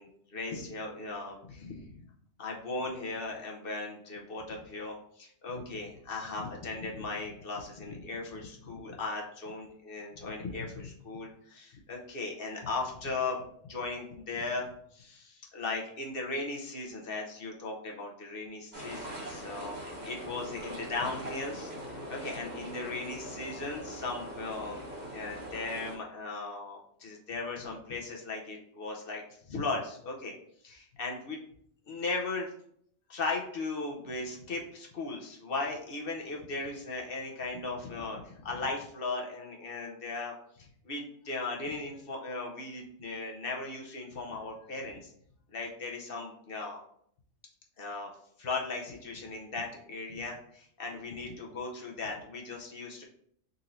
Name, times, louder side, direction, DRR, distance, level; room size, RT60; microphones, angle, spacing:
voice 1, 0.0-2.0 2.4-13.4 13.6-19.8 20.1-21.7 22.1-30.3 30.6-31.4 31.9-32.5 33.1-45.1 45.5-46.8 47.8-48.1 48.4-53.0, left 3 dB, 55° left, 0 dB, 0.9 m, -37 dB
sound 1, 18.7-26.0, equal, 35° right, 1.2 m, -41 dB
4.0 x 2.6 x 4.3 m, 0.67 s
omnidirectional pair, 1.3 m